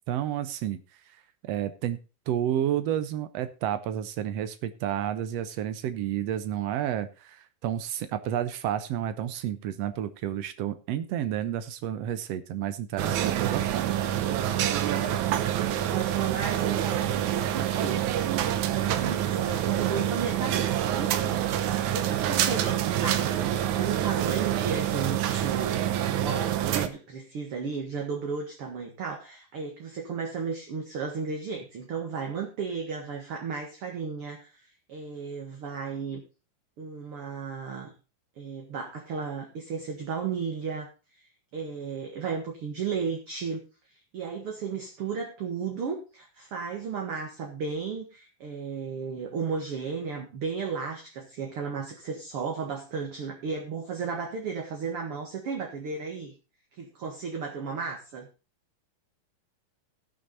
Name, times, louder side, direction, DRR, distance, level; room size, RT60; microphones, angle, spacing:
voice 1, 0.1-0.8 1.4-2.0 2.3-14.0, right 10 dB, 85° right, 11 dB, 1.4 m, -30 dB
sound 1, 13.0-26.9, right 11 dB, 70° right, 2.1 m, -27 dB
voice 2, 15.5-18.0 18.7-36.2 36.8-37.9 38.4-40.9 41.5-43.6 43.9-56.3 56.8-58.3, right 5 dB, 50° right, 1 dB, 2.3 m, -34 dB
17.5 x 6.2 x 4.1 m, 0.32 s
omnidirectional pair, 4.0 m